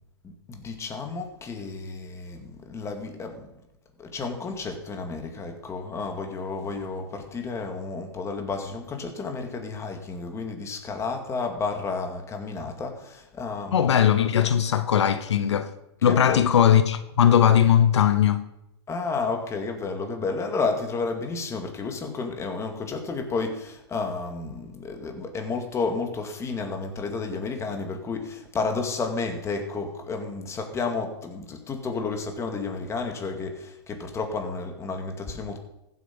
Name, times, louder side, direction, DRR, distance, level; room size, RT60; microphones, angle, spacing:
voice 1, 0.2-3.5 4.0-13.9 16.0-16.4 18.9-35.6, left 4 dB, 20° left, 2.2 m, -31 dB
voice 2, 13.7-15.7 16.0-18.4, left 9 dB, 85° left, 0.9 m, -19 dB
15.5 x 8.2 x 5.5 m
hypercardioid pair, 125°, 14 cm